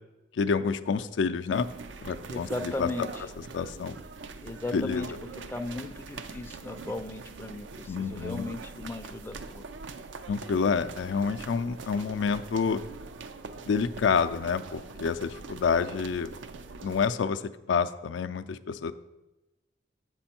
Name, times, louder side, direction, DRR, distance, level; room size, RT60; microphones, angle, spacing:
voice 1, 0.3-1.7 2.0-2.9 3.5-4.0 4.7-5.0 7.9-8.5 10.3-12.8 13.7-16.3 16.8-18.9, left 5 dB, 85° left, 9 dB, 0.4 m, -28 dB
sound 1, 1.5-17.1, right 4 dB, 85° right, 0.5 m, -43 dB
voice 2, 2.3-3.2 4.4-5.1 5.3-9.6, left 2 dB, 10° left, 6 dB, 0.4 m, -36 dB
7.7 x 6.2 x 4.3 m, 1.0 s
head